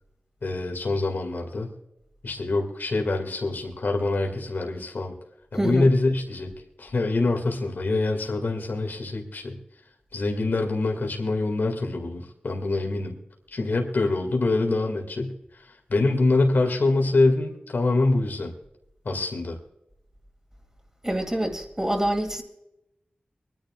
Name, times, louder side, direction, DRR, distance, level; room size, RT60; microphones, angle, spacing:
voice 1, 0.4-1.7 2.2-5.1 5.5-6.5 6.8-9.6 10.1-13.1 13.5-18.5 19.0-19.6, left 2 dB, 75° left, 2 dB, 2.2 m, -25 dB
voice 2, 5.5-5.9 21.0-22.4, right 1 dB, 15° right, 3 dB, 2.5 m, -26 dB
24.0 x 10.5 x 2.4 m, 0.87 s
wide cardioid pair, 60°, 3 cm